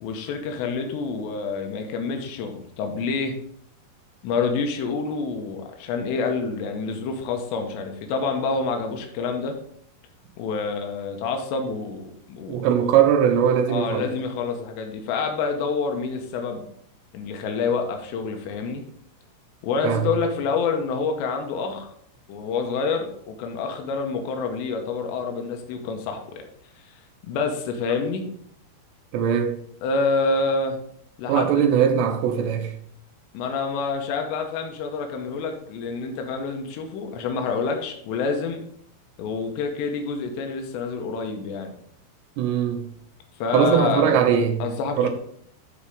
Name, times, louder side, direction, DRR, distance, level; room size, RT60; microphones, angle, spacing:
voice 1, 0.0-3.3 4.2-9.6 10.4-12.6 13.7-16.7 17.1-18.8 19.6-21.9 22.3-26.5 27.2-28.2 29.8-30.8 31.2-31.6 33.3-38.6 39.2-41.7 43.4-44.3 44.6-45.1, left 4 dB, 90° left, 3.2 m, -27 dB
voice 2, 12.5-14.1 19.8-20.1 29.1-29.6 31.3-32.7 42.4-42.9 43.5-44.6 45.0-45.1, right 8 dB, 80° right, 3.1 m, -20 dB
12.0 x 4.3 x 3.6 m
omnidirectional pair, 5.0 m